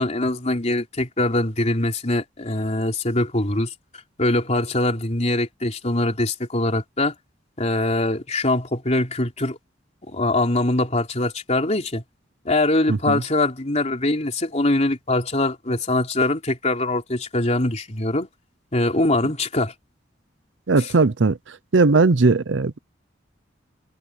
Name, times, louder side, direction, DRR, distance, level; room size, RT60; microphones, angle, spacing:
voice 1, 0.0-3.7 4.2-7.1 7.6-9.6 10.1-12.0 12.5-18.3 18.7-19.7 20.8-20.9, left 2 dB, 40° left, 3.5 m, -23 dB
voice 2, 12.9-13.2 20.7-21.4 21.7-22.8, right 3 dB, 75° right, 0.7 m, -18 dB
head